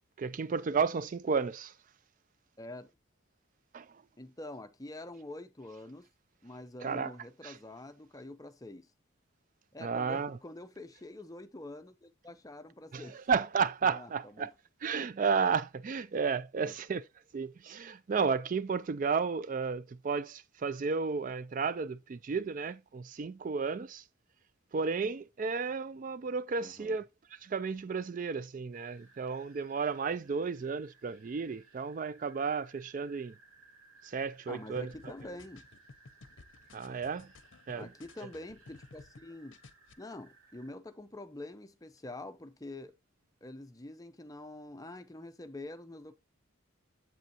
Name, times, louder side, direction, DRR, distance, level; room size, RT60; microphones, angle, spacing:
voice 1, 0.2-1.7 3.7-3.9 6.8-7.1 7.4-7.6 9.8-10.4 12.9-13.0 13.3-14.5 14.8-17.0 17.3-24.0 24.7-27.0 27.3-33.3 34.0-35.1 36.7-37.3 37.7-37.9, right 5 dB, 40° right, 0.3 m, -33 dB
voice 2, 2.6-2.9 4.2-6.1 6.4-8.9 9.7-13.2 13.8-14.1 14.4-14.5 16.6-16.7 26.6-27.0 34.5-35.6 37.7-39.6 40.0-42.9 43.4-46.2, left 1 dB, 15° left, 0.7 m, -46 dB
sound 1, 28.7-40.7, right 3 dB, 90° right, 3.1 m, -61 dB
sound 2, 34.7-39.2 39.5-39.9, left 3 dB, 65° left, 0.7 m, -55 dB
7.9 x 7.7 x 2.8 m
head